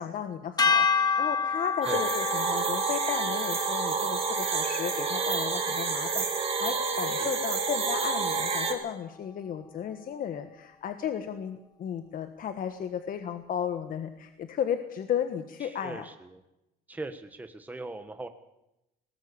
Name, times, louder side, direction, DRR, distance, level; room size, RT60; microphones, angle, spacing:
voice 1, 0.0-16.1, left 8 dB, 55° left, 8 dB, 1.4 m, -34 dB
sound 1, 0.6-6.9, left 5 dB, 25° left, 1.5 m, -30 dB
sound 2, 1.8-8.7, right 5 dB, 35° right, 3.8 m, -29 dB
voice 2, 7.1-7.4 15.6-16.4 16.9-18.3, right 2 dB, 10° right, 7 dB, 1.3 m, -40 dB
20.0 x 19.0 x 7.0 m, 0.91 s
cardioid pair, 110°, 17 cm